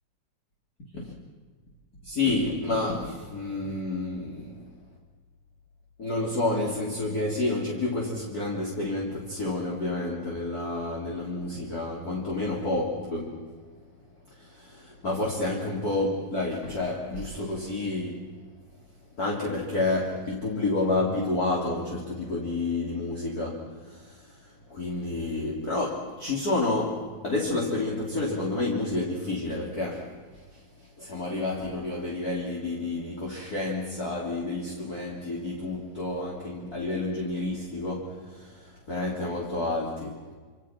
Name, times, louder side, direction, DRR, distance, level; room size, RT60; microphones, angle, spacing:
voice 1, 2.0-4.7 6.0-13.5 14.4-18.3 19.2-40.3, left 2 dB, 30° left, -3 dB, 3.7 m, -30 dB
27.5 x 27.0 x 6.0 m, 1.5 s
omnidirectional pair, 3.3 m